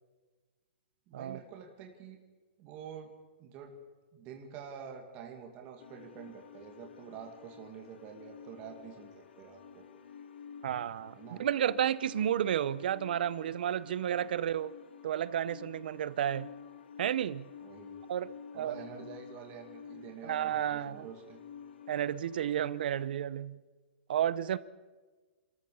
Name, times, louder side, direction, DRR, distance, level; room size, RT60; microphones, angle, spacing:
voice 1, 1.1-2.2 2.6-3.1 3.4-3.7 4.1-9.1 9.4-9.8 11.2-11.4 14.1-14.2 17.6-18.0 18.5-21.5 22.0-22.1, right 7 dB, 25° right, 2.1 m, -47 dB
sound 1, 5.8-23.1, left 7 dB, 65° left, 1.6 m, -51 dB
voice 2, 10.6-14.8 15.0-16.5 17.0-17.5 18.1-18.8 20.2-21.1 21.9-23.6 24.1-24.6, right 10 dB, 50° right, 0.7 m, -32 dB
28.0 x 14.0 x 6.9 m
hypercardioid pair, 170°, 6 cm